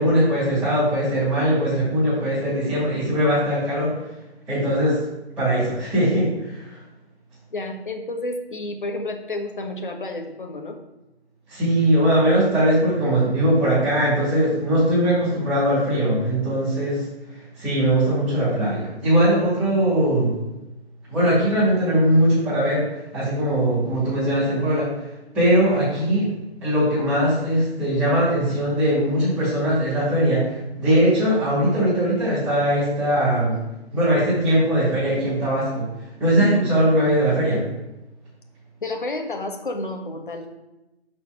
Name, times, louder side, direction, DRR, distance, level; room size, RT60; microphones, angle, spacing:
voice 1, 0.0-3.9 4.5-5.0 5.4-6.8 11.5-17.1 17.6-20.4 21.1-22.9 23.1-24.9 25.3-26.3 26.6-33.6 33.9-35.9 36.2-37.6, right 1 dB, 5° right, -14 dB, 2.1 m, -20 dB
voice 2, 7.5-10.8 36.4-36.6 38.8-40.5, left 2 dB, 50° left, 4 dB, 1.2 m, -30 dB
5.9 x 4.5 x 6.2 m, 0.97 s
figure-of-eight pair, 155°, 33 cm